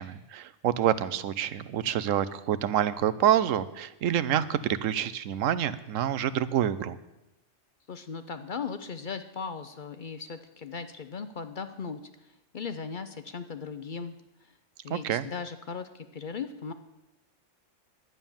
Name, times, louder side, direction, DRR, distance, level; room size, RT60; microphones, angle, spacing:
voice 1, 0.0-7.0 14.9-15.3, right 10 dB, 90° right, 15 dB, 1.0 m, -27 dB
voice 2, 7.9-14.1 14.4-14.5 14.8-16.7, left 5 dB, 50° left, 10 dB, 0.6 m, -38 dB
11.0 x 9.2 x 7.1 m, 0.95 s
omnidirectional pair, 1.3 m